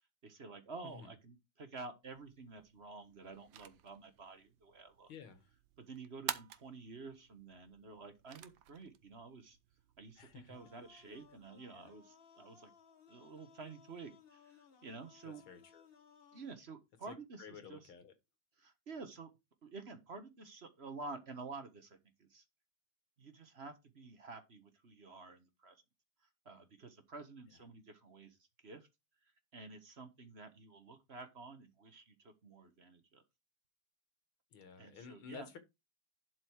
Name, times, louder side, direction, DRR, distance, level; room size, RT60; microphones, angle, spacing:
voice 1, 0.2-5.1 5.8-9.6 10.0-12.7 13.1-15.4 16.3-17.9 18.6-19.3 19.6-22.4 23.2-25.8 26.2-28.9 29.2-33.2 34.8-35.5, right 4 dB, 35° right, 1.2 m, -51 dB
sound 1, 2.0-11.5, right 11 dB, 70° right, 1.4 m, -51 dB
voice 2, 5.1-5.5 10.2-10.6 10.9-11.0 11.7-11.9 15.2-15.9 17.1-18.1 34.5-35.6, left 7 dB, 80° left, 2.4 m, -53 dB
sound 2, 10.5-16.5, left 7 dB, 40° left, 0.9 m, -63 dB
11.5 x 4.7 x 4.7 m
omnidirectional pair, 2.3 m